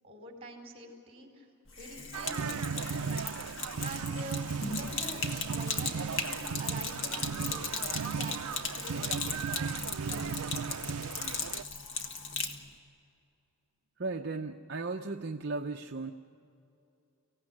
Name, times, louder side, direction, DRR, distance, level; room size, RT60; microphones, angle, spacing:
voice 1, 0.0-1.5 1.8-3.0 3.8-7.8 8.1-9.1 10.0-10.2, right 1 dB, 25° right, 1 dB, 4.3 m, -46 dB
Sink (filling or washing), 1.7-12.6, left 4 dB, 60° left, 1.7 m, -37 dB
sound 1, 2.1-11.6, right 6 dB, 90° right, 0.5 m, -36 dB
voice 2, 14.0-16.1, right 3 dB, 50° right, 4 dB, 0.7 m, -36 dB
24.5 x 16.5 x 9.8 m, 2.6 s
head